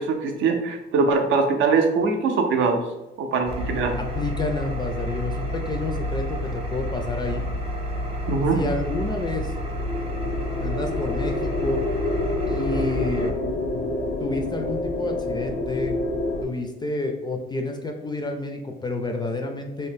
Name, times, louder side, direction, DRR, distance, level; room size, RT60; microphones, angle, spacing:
voice 1, 0.0-2.8 3.2-3.9 8.3-8.6, right 4 dB, 80° right, 4 dB, 0.5 m, -22 dB
Engine, 3.5-13.3, left 1 dB, 30° right, 0.6 m, -30 dB
voice 2, 4.0-7.4 8.5-9.5 10.6-11.8 12.5-13.4 14.2-15.9 16.4-19.9, left 2 dB, 20° left, 4 dB, 0.3 m, -29 dB
sound 1, 9.4-16.4, left 2 dB, 80° left, 0.6 m, -28 dB
2.6 x 2.1 x 3.5 m, 1.0 s
cardioid pair, 90°, 20 cm